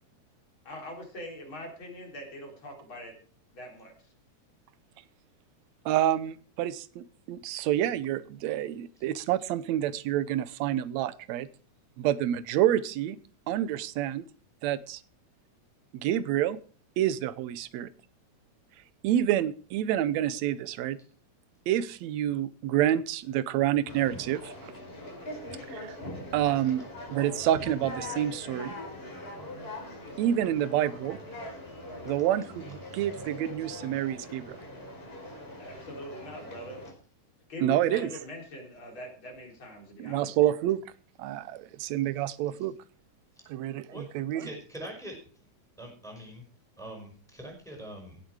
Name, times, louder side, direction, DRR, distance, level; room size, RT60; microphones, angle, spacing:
voice 1, 0.6-3.1 3.5-3.9 35.6-36.8 37.5-40.3, left 1 dB, 40° left, 1 dB, 4.4 m, -42 dB
voice 2, 5.9-11.5 12.0-13.2 13.5-14.2 14.6-15.0 16.0-16.6 17.0-17.9 19.0-21.0 21.7-24.7 25.7-26.0 26.3-26.8 27.1-28.7 30.2-31.2 32.1-34.6 37.6-38.1 40.0-40.8 41.2-42.7 43.5-44.5, right 12 dB, 75° right, 16 dB, 1.8 m, -28 dB
Conversation, 23.9-36.9, left 1 dB, 15° left, 4.6 m, -42 dB
voice 3, 44.4-45.2 45.8-46.5 46.8-48.2, right 1 dB, ahead, 2 dB, 5.2 m, -43 dB
17.0 x 8.4 x 4.8 m, 0.42 s
omnidirectional pair, 3.6 m